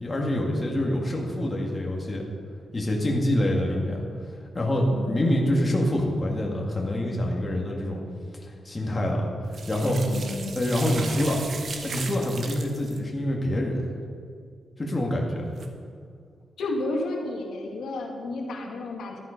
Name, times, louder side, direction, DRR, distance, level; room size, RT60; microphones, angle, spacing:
voice 1, 0.0-2.2 2.7-4.0 4.5-8.0 8.4-9.3 9.7-10.0 10.6-11.4 11.8-13.9 14.8-15.5, left 1 dB, 20° left, -1 dB, 2.0 m, -26 dB
voice 2, 3.5-4.0 4.9-5.4 10.0-10.5 16.6-19.2, left 2 dB, 90° left, 1 dB, 2.0 m, -32 dB
sound 1, 9.5-13.0 15.5-15.7, right 4 dB, 50° right, 1.2 m, -37 dB
13.0 x 12.0 x 5.2 m, 2.1 s
wide cardioid pair, 155°, 0 cm